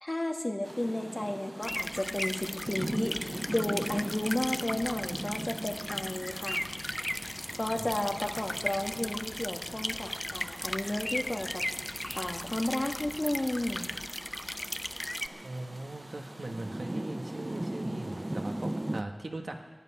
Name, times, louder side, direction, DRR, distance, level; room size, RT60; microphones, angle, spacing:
voice 1, 0.0-6.7 7.6-13.9, left 1 dB, 35° left, 3 dB, 1.8 m, -33 dB
Rain, 0.6-19.0, right 1 dB, 25° right, 0.5 m, -40 dB
sound 1, 1.6-15.3, left 1 dB, 20° left, 0.6 m, -37 dB
sound 2, 4.3-14.1, left 2 dB, 80° left, 1.2 m, -53 dB
voice 2, 15.4-19.6, right 2 dB, 70° right, 3 dB, 1.5 m, -40 dB
12.0 x 11.0 x 9.8 m, 1.2 s
wide cardioid pair, 50°, 0 cm